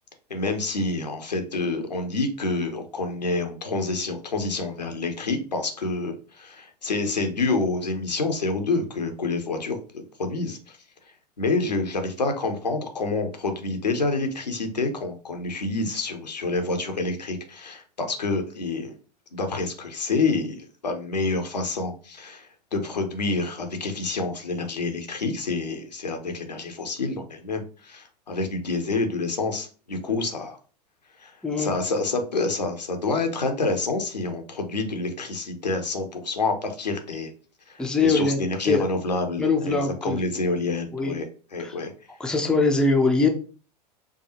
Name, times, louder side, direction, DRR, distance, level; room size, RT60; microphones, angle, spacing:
voice 1, 0.3-10.8 11.4-18.9 19.3-30.6 31.2-37.3 37.7-41.3 41.5-41.9, left 3 dB, 80° left, 5 dB, 0.8 m, -28 dB
voice 2, 37.8-38.4 38.7-38.8 39.4-40.2 40.9-41.2 41.6-41.7 42.2-43.3, left 3 dB, 5° left, 3 dB, 0.6 m, -22 dB
4.7 x 2.3 x 2.9 m, 0.37 s
figure-of-eight pair, 85°, 21 cm